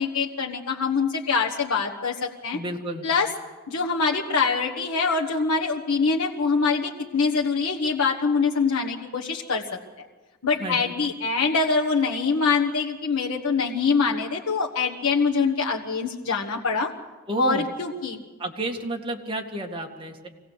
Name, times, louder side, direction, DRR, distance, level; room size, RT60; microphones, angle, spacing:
voice 1, 0.0-2.6 3.0-3.3 3.7-9.7 10.4-16.9 17.4-18.2, left 4 dB, 85° left, -1 dB, 1.4 m, -24 dB
voice 2, 2.5-3.1 10.6-10.9 17.3-17.7 18.4-20.3, right 1 dB, 25° right, 1 dB, 2.1 m, -31 dB
24.5 x 18.0 x 6.8 m, 1.3 s
head